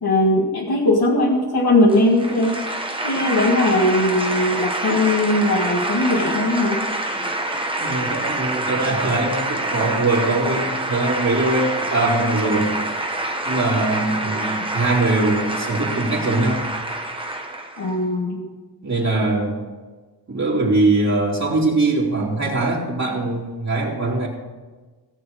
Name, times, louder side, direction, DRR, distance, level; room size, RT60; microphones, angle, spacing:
voice 1, 0.0-2.6 3.0-6.8 17.8-18.4, left 1 dB, 65° left, -3 dB, 2.0 m, -19 dB
sound 1, 1.9-17.9, right 1 dB, 15° right, 1.4 m, -26 dB
voice 2, 7.8-12.7 13.4-16.7 18.8-19.6 20.3-24.3, right 2 dB, 40° right, -6 dB, 3.1 m, -21 dB
18.0 x 7.0 x 5.3 m, 1.3 s
wide cardioid pair, 90°, 41 cm